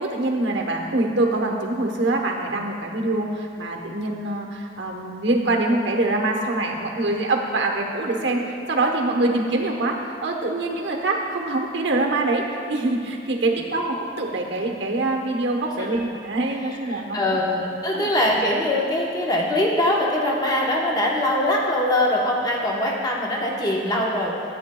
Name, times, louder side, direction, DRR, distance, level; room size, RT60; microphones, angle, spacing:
voice 1, 0.0-8.4 8.7-17.2 17.9-18.1, right 2 dB, 70° right, 1 dB, 1.0 m, -24 dB
voice 2, 16.9-24.3, left 1 dB, 20° left, -3 dB, 1.0 m, -22 dB
14.0 x 8.7 x 2.3 m, 2.5 s
head